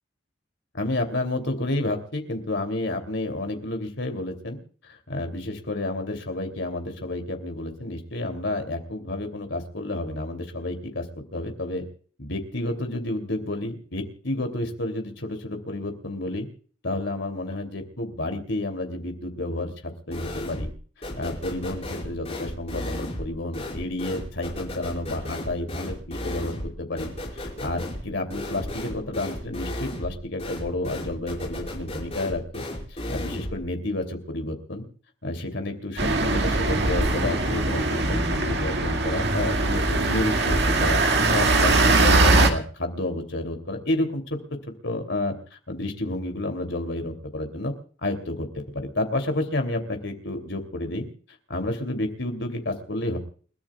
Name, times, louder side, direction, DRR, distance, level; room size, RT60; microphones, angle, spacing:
voice 1, 0.7-11.8 12.2-16.5 16.8-20.7 21.1-32.6 32.9-34.8 35.2-41.0 41.3-44.4 44.8-45.3 45.7-47.7 48.0-51.1 51.5-53.2, left 1 dB, 65° left, 5 dB, 3.0 m, -30 dB
sound 1, 20.1-20.8 21.0-33.6, left 1 dB, 30° left, 5.3 m, -34 dB
sound 2, 36.0-42.5, right 2 dB, 55° right, 2.0 m, -21 dB
29.5 x 13.5 x 2.4 m, 0.43 s
head